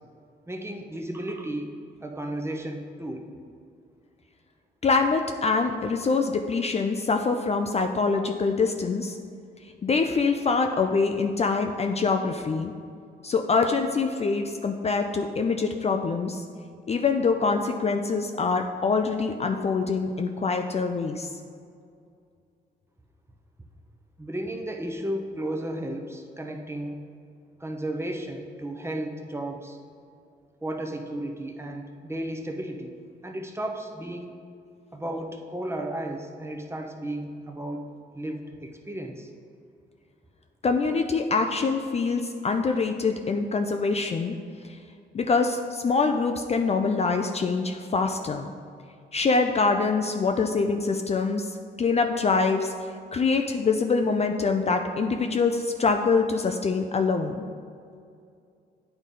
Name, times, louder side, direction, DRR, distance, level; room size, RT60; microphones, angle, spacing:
voice 1, 0.5-1.7 2.0-3.3 24.2-27.0 27.6-29.8 30.6-33.0 33.2-34.3 34.9-37.9 38.1-39.3, right 1 dB, 15° right, 3 dB, 0.8 m, -34 dB
voice 2, 4.8-9.2 9.8-12.7 13.2-16.4 16.9-21.3 40.6-44.4 45.1-48.5 49.1-52.7 53.1-57.4, left 4 dB, 35° left, 5 dB, 0.4 m, -24 dB
9.1 x 3.9 x 3.7 m, 2.4 s
supercardioid pair, 65°, 19 cm